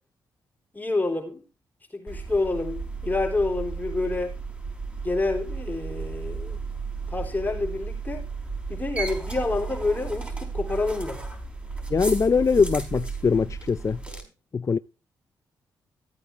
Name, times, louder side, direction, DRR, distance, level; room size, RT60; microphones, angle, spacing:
voice 1, 0.7-1.4 1.9-4.3 5.0-6.6 7.1-8.3 8.7-11.2, left 2 dB, 20° left, 4.0 m, -28 dB
sound 1, 2.1-14.2, right 4 dB, 15° right, 4.9 m, -34 dB
voice 2, 11.9-14.0 14.5-14.8, left 5 dB, 40° left, 0.5 m, -22 dB
14.5 x 8.7 x 3.6 m
supercardioid pair, 55°, 8 cm